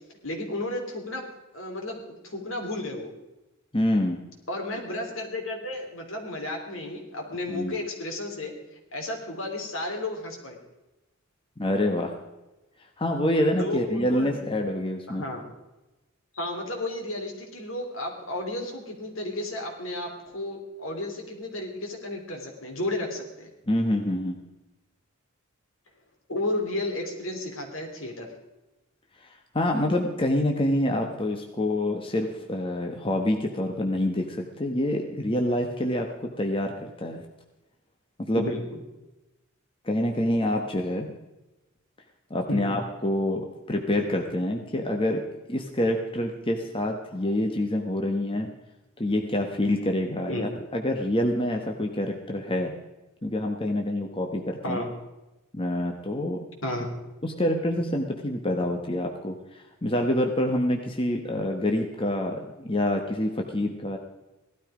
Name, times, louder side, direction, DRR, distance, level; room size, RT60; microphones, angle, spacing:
voice 1, 0.2-1.3 1.5-3.1 4.5-8.5 8.9-10.6 13.6-14.3 15.1-15.5 16.3-23.5 26.3-28.3 38.3-38.8 42.5-42.7 50.3-50.5 54.6-54.9 56.6-56.9, left 1 dB, 70° left, 2 dB, 3.2 m, -33 dB
voice 2, 3.7-4.2 7.5-7.7 11.6-12.1 13.0-15.2 23.7-24.3 29.5-36.1 36.4-37.2 38.2-38.4 39.8-41.1 42.3-45.2 45.5-48.5 49.0-52.7 53.2-54.8 55.5-56.4 57.2-64.0, left 1 dB, 25° left, 3 dB, 1.2 m, -26 dB
17.5 x 12.5 x 5.0 m, 1.0 s
head